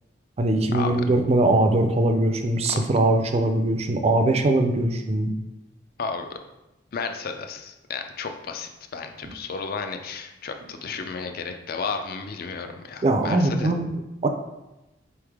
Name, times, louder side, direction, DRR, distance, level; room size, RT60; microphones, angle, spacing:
voice 1, 0.4-5.3 13.0-14.3, right 2 dB, 35° right, 5 dB, 0.4 m, -21 dB
voice 2, 6.0-6.4 6.9-13.7, left 5 dB, 55° left, 6 dB, 0.4 m, -33 dB
4.1 x 3.2 x 3.5 m, 0.96 s
head